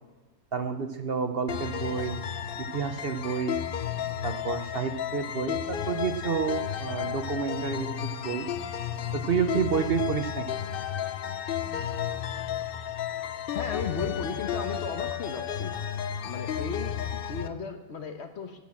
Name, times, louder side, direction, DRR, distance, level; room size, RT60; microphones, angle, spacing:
voice 1, 0.5-2.2 2.6-3.6 4.2-8.5 9.1-10.5, right 6 dB, 50° right, 7 dB, 0.8 m, -29 dB
sound 1, 1.5-17.5, left 9 dB, 75° left, 0.5 m, -33 dB
voice 2, 13.5-15.8 16.2-18.7, left 5 dB, 50° left, 7 dB, 1.2 m, -35 dB
16.0 x 6.2 x 7.2 m, 1.2 s
omnidirectional pair, 1.6 m